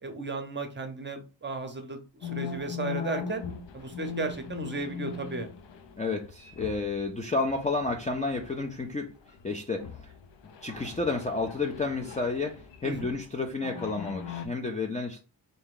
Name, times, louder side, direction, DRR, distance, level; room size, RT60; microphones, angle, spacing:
voice 1, 0.0-3.4 3.7-5.5 12.8-13.1, right 3 dB, 25° right, 0.7 m, -35 dB
sound 1, 2.2-7.1 7.4-8.9 9.3-9.4 9.8-13.3 13.6-14.5, left 6 dB, 75° left, 0.6 m, -40 dB
voice 2, 6.0-9.1 9.4-9.9 10.6-15.2, left 3 dB, 20° left, 0.4 m, -31 dB
3.4 x 2.7 x 3.7 m
wide cardioid pair, 135°, 44 cm